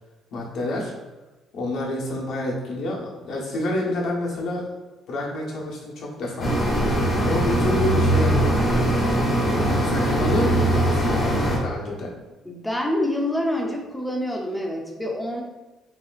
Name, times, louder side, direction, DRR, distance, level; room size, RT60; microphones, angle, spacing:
voice 1, 0.3-0.9 1.5-4.7 5.1-6.5 7.2-11.3 11.6-12.1, left 1 dB, 55° left, -2 dB, 0.9 m, -28 dB
sound 1, 6.4-11.6, right 1 dB, 25° left, 1.0 m, -21 dB
voice 2, 12.4-15.4, left 1 dB, 5° left, 0 dB, 0.5 m, -26 dB
5.6 x 2.7 x 2.4 m, 1.1 s
cardioid pair, 180°, 0 cm